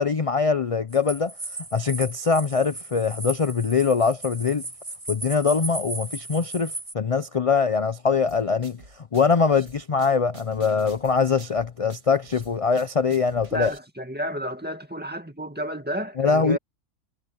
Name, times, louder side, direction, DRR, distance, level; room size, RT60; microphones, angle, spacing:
voice 1, 0.0-1.3 1.7-4.6 5.1-8.8 9.1-13.7 16.2-16.6, left 5 dB, 40° left, 0.5 m, -23 dB
sound 1, 0.9-6.9, right 2 dB, 25° right, 2.4 m, -36 dB
sound 2, 8.3-13.8, right 4 dB, 60° right, 3.0 m, -47 dB
voice 2, 13.5-16.6, equal, 5° right, 2.1 m, -31 dB
omnidirectional pair, 1.4 m